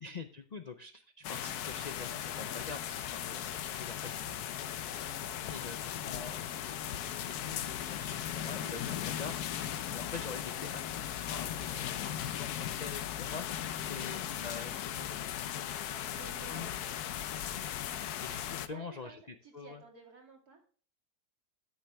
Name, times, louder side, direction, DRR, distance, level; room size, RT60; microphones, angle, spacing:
voice 1, 0.0-5.2 5.5-6.4 7.0-11.9 12.2-16.2 16.5-16.7 17.3-19.2 19.5-19.8, left 4 dB, 55° left, 8 dB, 0.4 m, -46 dB
sound 1, 1.2-18.7, left 10 dB, 85° left, 1.2 m, -38 dB
voice 2, 16.1-16.9 18.5-20.6, right 4 dB, 80° right, 1 dB, 3.0 m, -53 dB
12.5 x 6.5 x 3.4 m, 0.41 s
omnidirectional pair, 1.6 m